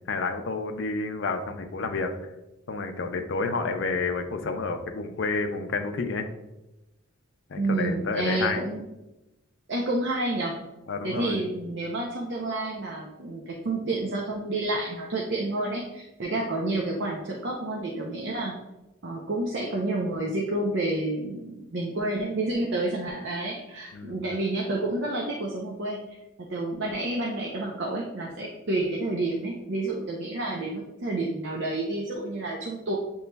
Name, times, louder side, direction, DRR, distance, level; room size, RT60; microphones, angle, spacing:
voice 1, 0.1-2.3 2.7-6.3 7.5-8.7 10.9-11.4 23.9-24.2, left 3 dB, 55° left, 6 dB, 0.5 m, -30 dB
voice 2, 7.6-8.9 9.7-10.6 11.0-18.6 19.0-26.0 26.5-32.9, right 2 dB, 55° right, -1 dB, 0.6 m, -29 dB
7.9 x 3.0 x 2.2 m, 0.96 s
head